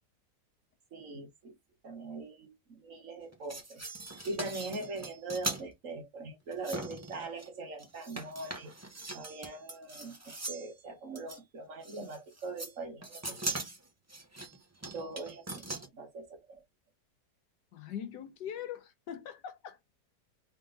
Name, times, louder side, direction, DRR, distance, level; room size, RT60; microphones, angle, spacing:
voice 1, 0.9-1.5 1.8-3.8 4.2-8.7 9.1-13.6 14.9-15.5 15.9-16.6, right 2 dB, 50° right, 1.5 m, -41 dB
sound 1, 3.3-5.6 6.5-7.5 7.8-10.7 11.2-11.4 11.8-12.7 13.0-15.9, right 2 dB, 20° right, 0.4 m, -40 dB
voice 2, 17.7-19.8, left 9 dB, 85° left, 1.5 m, -42 dB
3.7 x 3.4 x 3.8 m
omnidirectional pair, 1.8 m